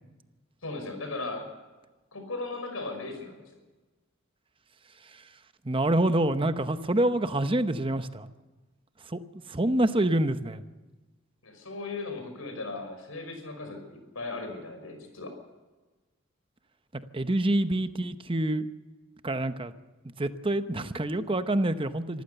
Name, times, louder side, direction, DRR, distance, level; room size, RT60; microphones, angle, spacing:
voice 1, 0.6-1.5 2.1-3.4 11.4-15.3, left 3 dB, 90° left, 5 dB, 5.6 m, -37 dB
voice 2, 5.6-8.3 9.0-9.2 9.5-10.6 17.1-18.7 19.2-19.7 20.2-22.2, right 1 dB, 25° right, 10 dB, 0.8 m, -26 dB
26.0 x 14.5 x 6.9 m, 1.2 s
head